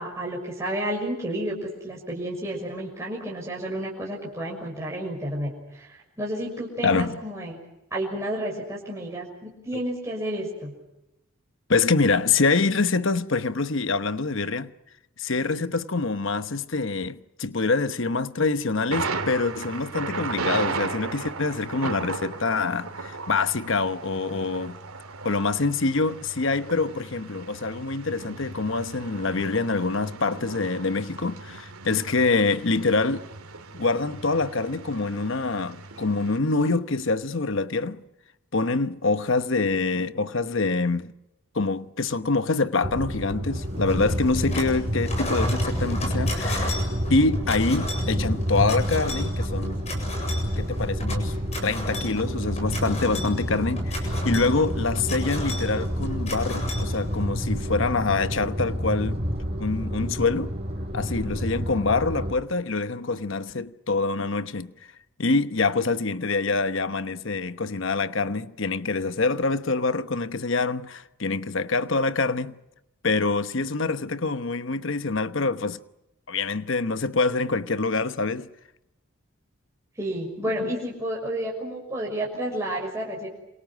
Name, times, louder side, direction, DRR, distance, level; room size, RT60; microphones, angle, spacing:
voice 1, 0.0-7.6 7.9-10.7 80.0-83.3, right 1 dB, 15° right, 6.3 m, -31 dB
voice 2, 6.8-7.2 9.7-9.8 11.7-14.7 15.2-24.8 25.2-33.3 33.7-38.0 38.5-41.1 41.5-46.8 47.1-49.8 50.6-51.3 51.6-59.2 59.6-60.5 60.9-64.7 65.2-72.6 73.0-75.8 76.3-78.5 80.6-80.7, left 3 dB, 60° left, 1.0 m, -25 dB
Thunder, 18.9-36.4, right 4 dB, 90° right, 2.8 m, -36 dB
sound 1, 42.8-62.3, equal, 30° right, 5.6 m, -28 dB
sound 2, 43.9-44.8 45.0-57.4, left 2 dB, 30° left, 7.8 m, -35 dB
28.0 x 27.5 x 6.3 m
head